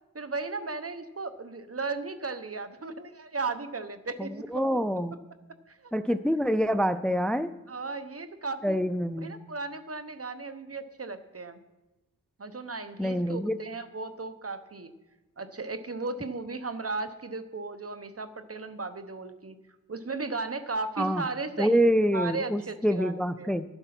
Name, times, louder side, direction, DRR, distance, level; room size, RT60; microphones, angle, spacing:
voice 1, 0.1-4.8 5.7-5.9 7.7-8.8 9.2-11.6 12.4-14.9 15.4-19.6 19.9-21.8 22.1-23.5, right 3 dB, 45° right, 10 dB, 0.9 m, -36 dB
voice 2, 4.2-5.1 5.9-7.5 8.6-9.3 13.0-13.6 21.0-21.2 21.6-23.7, equal, 5° left, 12 dB, 0.4 m, -26 dB
12.0 x 8.0 x 5.9 m, 1.1 s
wide cardioid pair, 50°, 33 cm